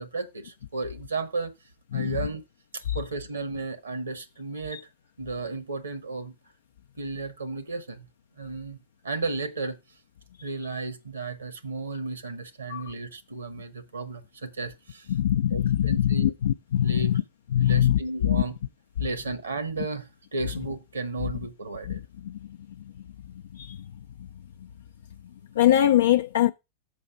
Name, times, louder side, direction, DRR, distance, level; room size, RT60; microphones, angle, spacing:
voice 1, 0.0-1.5 1.9-2.4 2.7-4.9 5.2-6.3 7.0-8.0 8.4-8.8 9.0-9.8 10.4-15.1 15.5-16.3 16.8-17.1 17.6-18.5 19.0-20.1 20.3-22.0, right 3 dB, 75° right, 1.2 m, -34 dB
voice 2, 15.1-17.2 17.5-18.4 21.9-22.4 23.5-23.8 25.6-26.5, left 11 dB, 60° left, 0.4 m, -23 dB
7.5 x 5.5 x 4.8 m
figure-of-eight pair, 90°, 0 cm